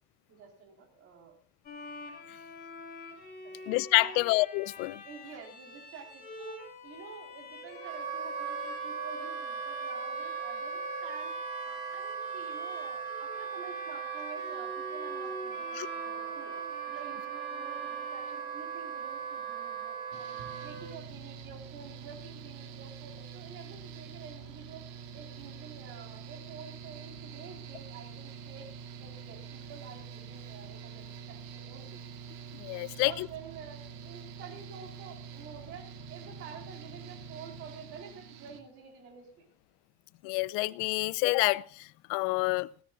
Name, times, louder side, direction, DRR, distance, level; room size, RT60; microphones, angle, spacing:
voice 1, 0.3-1.4 3.4-3.6 3.9-4.2 5.0-11.3 11.6-16.6 16.9-20.3 20.6-24.8 25.1-28.7 29.0-32.0 32.8-39.4, right 6 dB, 50° right, 4.0 m, -49 dB
Bowed string instrument, 1.6-19.1, left 3 dB, 35° left, 5.8 m, -46 dB
voice 2, 3.7-5.0 15.8-15.9 32.5-33.3 40.2-42.7, left 22 dB, 85° left, 0.7 m, -28 dB
Wind instrument woodwind instrument, 7.7-20.9, right 7 dB, 35° right, 3.4 m, -38 dB
Mechanical fan, 20.1-38.6, right 6 dB, 75° right, 2.2 m, -46 dB
19.0 x 16.0 x 2.4 m
cardioid pair, 150°, 29 cm